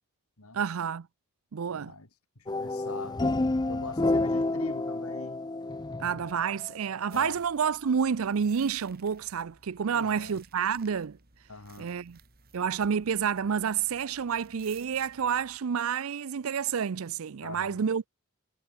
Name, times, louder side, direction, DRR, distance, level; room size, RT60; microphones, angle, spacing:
voice 1, 0.5-1.1 1.5-1.9 6.0-11.2 11.8-12.2 12.5-18.1, right 7 dB, 70° right, 0.5 m, -29 dB
voice 2, 1.7-2.1 2.4-3.2 3.7-5.4 7.1-7.4 9.9-10.4 11.5-11.9 17.4-17.8, left 3 dB, 80° left, 3.2 m, -42 dB
sound 1, 2.5-6.7, left 2 dB, 20° left, 0.4 m, -29 dB
sound 2, 7.1-15.6, right 6 dB, 45° right, 2.5 m, -58 dB
head